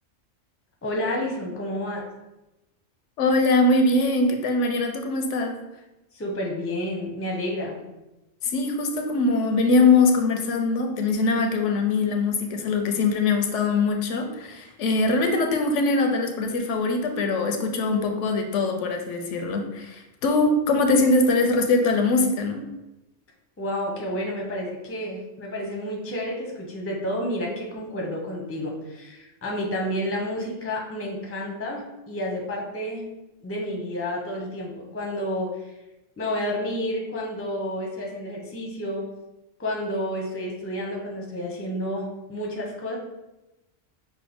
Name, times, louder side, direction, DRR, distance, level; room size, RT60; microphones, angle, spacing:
voice 1, 0.8-2.0 6.1-7.8 23.6-33.0 33.4-35.7 36.2-39.1 39.6-43.0, left 1 dB, 15° left, -1 dB, 0.5 m, -30 dB
voice 2, 3.2-5.6 8.4-22.6, left 3 dB, 85° left, 4 dB, 1.0 m, -22 dB
5.6 x 2.1 x 3.5 m, 0.98 s
omnidirectional pair, 1.2 m